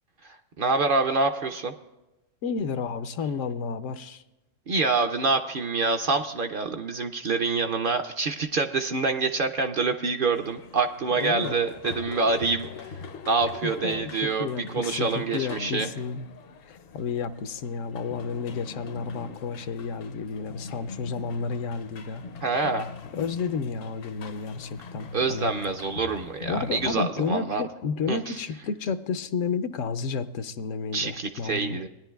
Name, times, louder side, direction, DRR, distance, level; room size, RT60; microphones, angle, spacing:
voice 1, 0.2-1.7 4.7-12.7 13.3-14.5 14.7-15.9 22.4-22.9 25.1-27.6 28.1-28.4 30.9-31.9, right 4 dB, 55° right, 6 dB, 0.6 m, -26 dB
voice 2, 2.4-4.2 11.1-11.5 13.6-16.3 16.6-22.2 23.2-25.5 26.5-31.8, left 5 dB, 80° left, 10 dB, 1.0 m, -31 dB
sound 1, 10.3-27.0, left 5 dB, 60° left, 0.7 m, -41 dB
19.5 x 10.5 x 2.3 m, 1.0 s
omnidirectional pair, 1.3 m